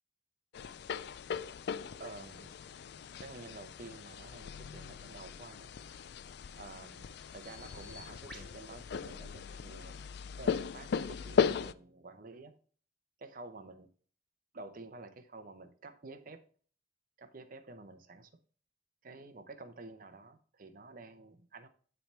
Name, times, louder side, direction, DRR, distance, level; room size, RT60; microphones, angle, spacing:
sound 1, 0.5-11.7, left 6 dB, 60° left, 0.4 m, -37 dB
voice 1, 2.0-2.6 3.2-5.7 6.5-10.0 10.4-12.5 13.2-13.9 14.5-16.4 17.2-18.3 19.0-21.7, right 3 dB, 50° right, 8 dB, 0.8 m, -50 dB
Bird vocalization bird call bird song, 5.8-10.0, left 2 dB, ahead, 3.1 m, -58 dB
10.0 x 3.5 x 4.4 m, 0.43 s
head